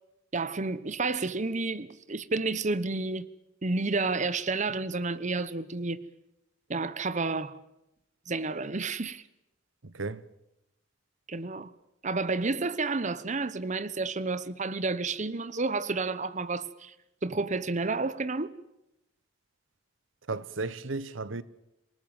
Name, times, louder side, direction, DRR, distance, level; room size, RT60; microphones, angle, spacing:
voice 1, 0.3-3.3 3.6-6.1 6.7-7.6 8.3-9.2 11.3-11.7 12.0-16.9 17.2-18.5, right 3 dB, 40° right, 1.0 m, -30 dB
voice 2, 9.8-10.2 20.3-21.4, right 3 dB, 85° right, 1.1 m, -34 dB
27.5 x 18.5 x 9.0 m
head